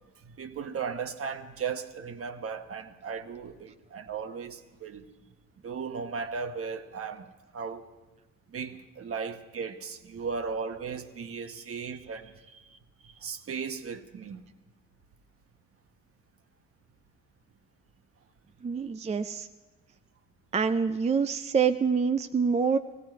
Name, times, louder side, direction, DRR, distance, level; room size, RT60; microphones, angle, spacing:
voice 1, 0.2-5.1 5.6-7.9 8.5-12.8 13.0-14.4, right 5 dB, 50° right, 1.1 m, -36 dB
voice 2, 18.6-19.5 20.5-22.8, right 6 dB, 25° right, 0.4 m, -26 dB
18.0 x 16.0 x 4.5 m
cardioid pair, 90°, 30 cm